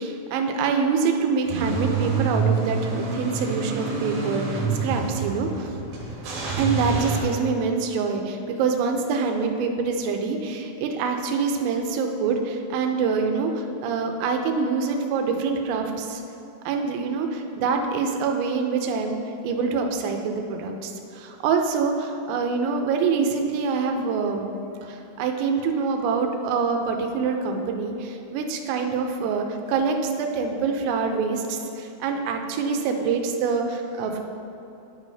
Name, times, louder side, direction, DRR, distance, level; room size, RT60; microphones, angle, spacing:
voice 1, 0.0-5.7 6.6-16.2 16.7-19.2 19.4-24.5 24.8-34.2, right 5 dB, 85° right, 4 dB, 3.3 m, -25 dB
Car / Engine starting / Idling, 1.5-7.2, right 5 dB, 65° right, 2.4 m, -27 dB
11.0 x 8.1 x 2.7 m, 2.8 s
omnidirectional pair, 5.9 m